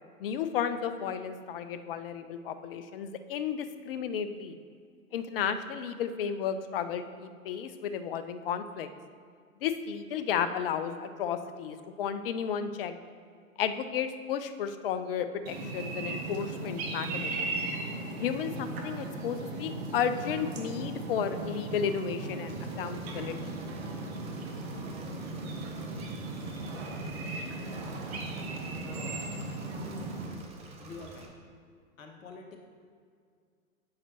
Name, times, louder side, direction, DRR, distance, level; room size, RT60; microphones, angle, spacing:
voice 1, 0.2-4.6 5.1-8.9 9.6-12.9 13.6-17.5 18.2-23.5, left 8 dB, 40° left, 10 dB, 0.5 m, -33 dB
sound 1, 15.5-30.3, right 2 dB, 45° right, 1.2 m, -37 dB
Engine / Mechanisms, 22.5-31.3, right 2 dB, 15° right, 0.6 m, -49 dB
voice 2, 30.8-31.3 32.0-32.5, left 4 dB, 65° left, 2 dB, 1.2 m, -46 dB
8.0 x 6.5 x 2.9 m, 2.1 s
hypercardioid pair, 115°, 43 cm